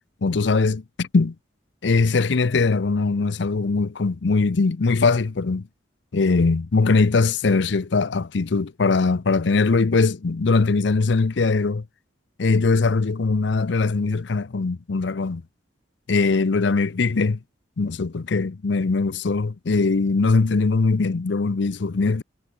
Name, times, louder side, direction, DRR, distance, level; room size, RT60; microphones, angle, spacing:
voice 1, 0.2-1.3 1.8-5.7 6.1-11.8 12.4-15.4 16.1-17.4 17.8-22.2, left 4 dB, 65° left, 0.6 m, -21 dB
head